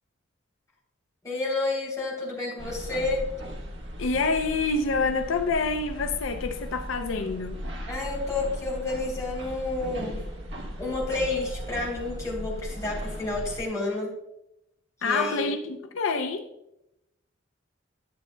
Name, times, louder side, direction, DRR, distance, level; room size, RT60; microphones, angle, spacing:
voice 1, 1.2-3.2 7.9-10.2 10.8-14.1 15.0-15.5, left 2 dB, 15° left, 3.3 m, -30 dB
sound 1, 2.6-13.6, equal, 65° right, 1.3 m, -37 dB
voice 2, 4.0-7.7 15.0-16.5, left 4 dB, 85° left, 0.5 m, -27 dB
11.5 x 7.9 x 2.2 m
head